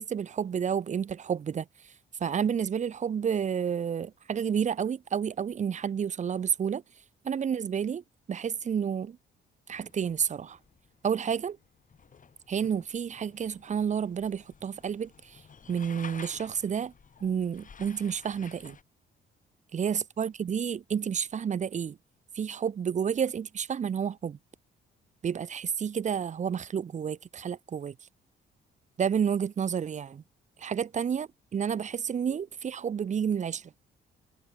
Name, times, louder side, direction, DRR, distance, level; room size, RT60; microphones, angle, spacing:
voice 1, 0.0-1.6 2.2-6.8 7.2-8.0 8.3-9.2 9.7-10.6 11.0-11.6 12.5-15.1 15.7-16.9 17.2-18.8 19.7-22.0 22.4-24.4 25.2-27.9 29.0-30.2 30.6-33.6, right 7 dB, 40° right, 0.6 m, -30 dB
sound 1, 9.7-18.8, left 6 dB, 40° left, 3.3 m, -52 dB
cardioid pair, 90°, 20 cm